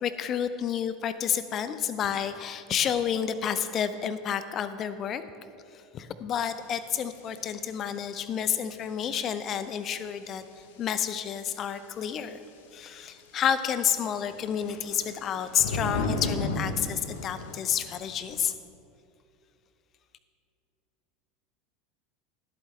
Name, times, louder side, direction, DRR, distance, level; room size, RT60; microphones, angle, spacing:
voice 1, 0.0-5.2 5.7-10.4 10.8-12.4 12.7-18.5, left 8 dB, 35° left, 13 dB, 0.6 m, -30 dB
sound 1, 6.6-6.7 7.4-7.5 7.7-8.0 10.1-10.2 11.4-11.5 14.1-18.5, left 2 dB, 60° left, 0.9 m, -34 dB
20.0 x 8.1 x 3.2 m, 2.5 s
figure-of-eight pair, 75°, 0 cm